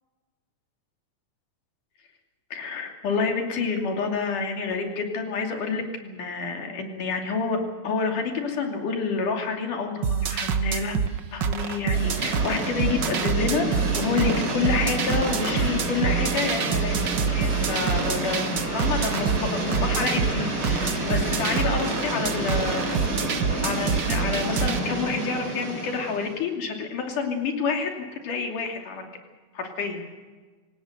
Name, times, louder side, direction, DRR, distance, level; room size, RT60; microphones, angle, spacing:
voice 1, 2.5-7.6 7.8-11.0 11.3-17.0 17.3-22.9 23.6-27.9 28.2-29.0 29.5-30.0, left 5 dB, 85° left, 3 dB, 4.4 m, -28 dB
sound 1, 10.0-24.8, right 7 dB, 55° right, 1.3 m, -27 dB
sound 2, 11.9-26.4, right 1 dB, 30° right, 5.6 m, -29 dB
27.0 x 17.5 x 6.7 m, 1.4 s
omnidirectional pair, 3.5 m